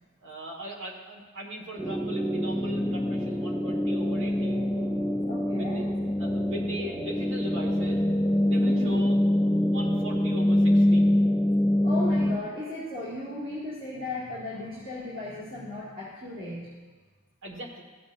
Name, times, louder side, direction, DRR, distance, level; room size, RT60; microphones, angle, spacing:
voice 1, 0.2-4.6 5.5-5.9 6.2-8.1 8.4-9.2 9.4-11.0 17.4-17.8, right 1 dB, 60° right, 0 dB, 1.6 m, -40 dB
sound 1, 1.8-12.4, left 1 dB, 5° left, 0.3 m, -25 dB
voice 2, 5.3-5.8 8.6-9.0 11.7-16.7, left 2 dB, 40° right, -10 dB, 1.9 m, -36 dB
14.5 x 7.0 x 2.6 m, 1.3 s
head